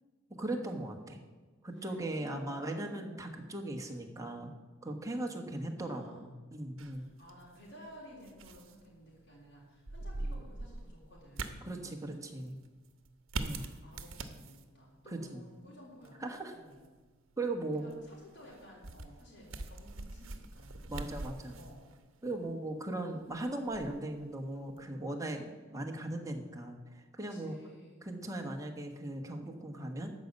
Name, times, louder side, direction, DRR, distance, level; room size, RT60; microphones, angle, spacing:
voice 1, 0.3-1.2 1.6-4.5 4.8-7.0 11.6-12.6 13.3-13.7 15.1-15.4 16.2-16.5 17.4-17.9 20.9-21.6 22.2-27.6 28.0-30.1, right 1 dB, 15° right, 2 dB, 1.3 m, -38 dB
voice 2, 1.8-3.5 5.5-6.5 6.9-12.1 13.4-16.9 17.8-21.9 23.0-23.3 27.2-28.1, equal, 60° left, -5 dB, 3.6 m, -54 dB
sound 1, 6.8-24.9, right 2 dB, 80° right, 1.0 m, -45 dB
12.5 x 5.4 x 8.1 m, 1.3 s
head